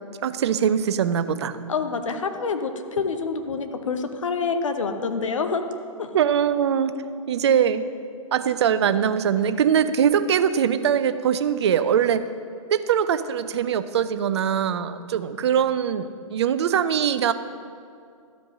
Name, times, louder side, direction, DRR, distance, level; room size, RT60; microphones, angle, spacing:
voice 1, 0.2-1.5 6.1-6.9 7.3-7.8 8.3-12.2 12.7-17.3, right 8 dB, 50° right, 12 dB, 0.5 m, -22 dB
voice 2, 1.7-5.6 6.0-6.1, left 5 dB, 65° left, 7 dB, 0.9 m, -27 dB
12.5 x 5.2 x 6.3 m, 2.3 s
figure-of-eight pair, 115°, 17 cm